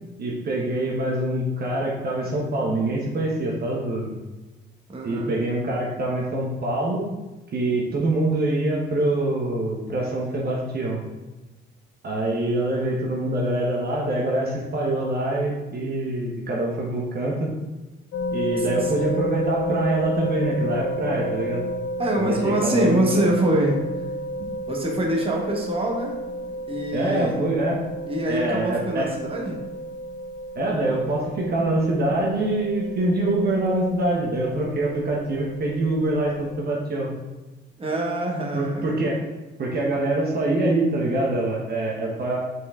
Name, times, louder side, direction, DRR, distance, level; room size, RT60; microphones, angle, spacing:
voice 1, 0.2-4.1 5.0-7.0 7.5-11.0 12.0-17.5 18.3-21.6 22.2-23.2 26.9-27.8 28.3-29.1 30.5-37.1 38.5-39.2 39.6-42.4, right 1 dB, 50° right, -2 dB, 1.2 m, -25 dB
voice 2, 4.9-5.3 18.7-18.9 22.0-23.8 24.4-26.2 26.7-27.4 28.1-29.6 37.8-38.9, right 1 dB, 30° right, -1 dB, 1.4 m, -25 dB
sound 1, 18.1-36.5, equal, 70° left, 0.8 m, -32 dB
5.8 x 4.6 x 3.7 m, 1.1 s
cardioid pair, 90°, 20 cm